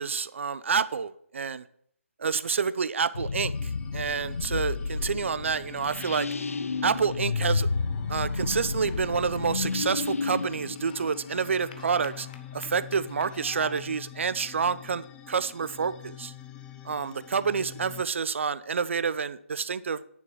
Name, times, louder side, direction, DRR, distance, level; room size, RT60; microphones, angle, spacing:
voice 1, 0.0-1.6 2.2-6.3 6.8-7.7 8.1-12.3 12.5-16.3 16.8-20.0, right 6 dB, 60° right, 15 dB, 0.7 m, -28 dB
sound 1, 3.1-11.8, left 4 dB, 75° left, 0.9 m, -31 dB
sound 2, 3.5-18.0, left 11 dB, 10° left, 0.5 m, -46 dB
sound 3, 8.8-13.8, left 7 dB, 35° left, 1.1 m, -50 dB
9.6 x 7.0 x 6.4 m, 0.66 s
figure-of-eight pair, 150°, 8 cm